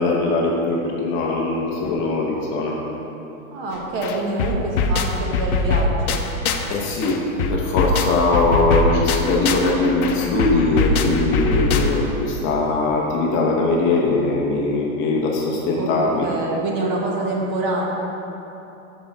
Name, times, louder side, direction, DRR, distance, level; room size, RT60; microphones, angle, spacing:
voice 1, 0.0-2.8 6.7-16.3, left 2 dB, 30° left, -1 dB, 0.7 m, -21 dB
voice 2, 3.5-6.2 6.6-6.7 15.7-15.9 16.2-17.8, right 2 dB, 45° right, -1 dB, 1.3 m, -26 dB
sound 1, 3.7-3.8 4.0-6.7 7.0-12.2, left 3 dB, 80° left, 0.8 m, -22 dB
6.0 x 5.5 x 5.3 m, 3.0 s
supercardioid pair, 140°, 43 cm